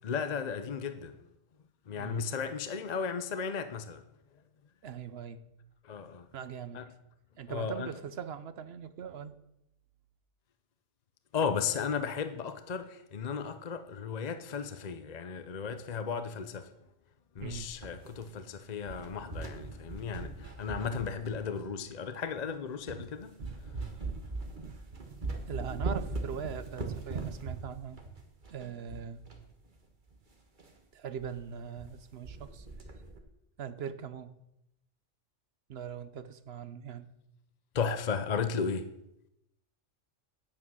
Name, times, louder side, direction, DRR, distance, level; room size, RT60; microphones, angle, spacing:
voice 1, 0.0-1.2 1.9-4.0 5.8-6.3 6.7-6.8 7.5-7.9 11.3-16.7 17.3-23.4 37.7-38.9, left 6 dB, 45° left, 0.7 m, -35 dB
voice 2, 2.0-2.3 4.8-5.5 6.3-6.8 7.4-9.4 17.4-17.7 25.5-28.0 28.5-29.2 30.9-32.7 33.6-34.3 35.7-37.0, right 7 dB, 60° right, 0.9 m, -41 dB
sound 1, 17.4-18.5 18.8-21.8 22.4-22.5 22.9-23.1 23.4-29.5 29.7-29.8 30.1-30.2 30.6-30.8 31.2-31.3 31.6-32.0 32.2-33.2, right 3 dB, 40° right, 1.6 m, -40 dB
9.7 x 8.8 x 6.2 m
omnidirectional pair, 1.3 m